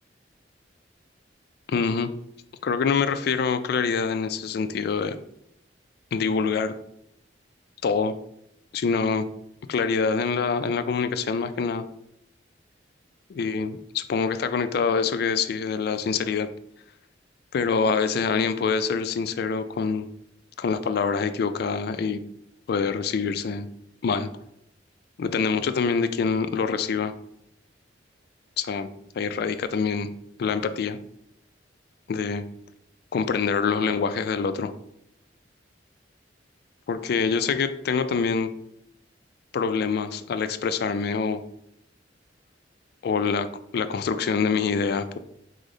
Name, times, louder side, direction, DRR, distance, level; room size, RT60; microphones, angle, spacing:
voice 1, 1.7-2.1 2.6-5.2 6.1-6.7 7.8-8.2 8.7-9.3 9.7-11.9 13.3-16.5 17.5-20.1 20.6-22.2 22.7-23.7 24.0-24.3 25.2-27.1 28.6-28.9 29.2-30.1 30.4-31.0 32.1-32.4 33.1-34.7 36.9-38.5 39.5-41.4 43.0-43.5 43.7-45.2, left 5 dB, 60° left, 10 dB, 0.3 m, -25 dB
4.9 x 2.0 x 3.8 m, 0.74 s
head